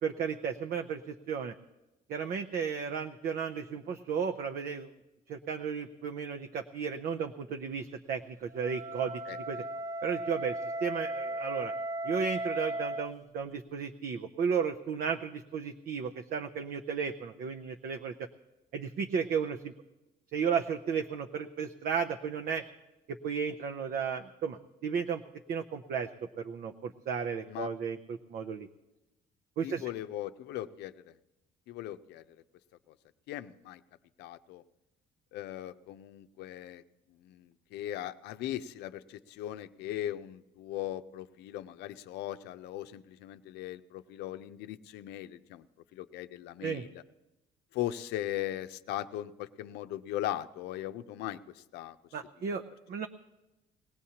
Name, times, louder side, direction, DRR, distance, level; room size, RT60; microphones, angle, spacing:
voice 1, 0.0-1.5 2.1-4.9 5.3-9.2 9.5-9.6 10.0-11.7 12.0-18.3 18.7-19.7 20.3-22.6 23.1-25.2 25.5-26.1 26.4-28.7 29.6-29.9 46.6-46.9 52.1-53.1, right 6 dB, 60° right, 6 dB, 0.7 m, -34 dB
Wind instrument woodwind instrument, 8.5-13.1, right 1 dB, 20° right, 0.4 m, -36 dB
voice 2, 29.6-31.1 31.7-32.2 33.3-33.8 34.2-34.6 35.3-36.8 37.2-45.7 45.9-47.0 47.7-52.0, left 13 dB, 85° left, 11 dB, 0.6 m, -39 dB
20.5 x 16.5 x 2.9 m, 0.99 s
cardioid pair, 110°, 17 cm